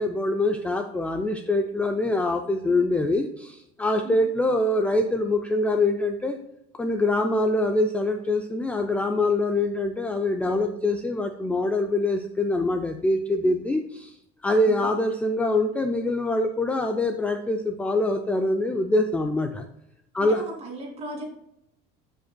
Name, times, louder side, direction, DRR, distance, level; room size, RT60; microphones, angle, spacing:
voice 1, 0.0-6.4 6.7-14.2 14.4-19.7 20.1-20.4, left 2 dB, 5° left, 5 dB, 0.3 m, -24 dB
voice 2, 20.2-21.3, right 2 dB, 30° right, 0 dB, 2.2 m, -37 dB
13.5 x 5.2 x 2.2 m, 0.80 s
cardioid pair, 165°, 19 cm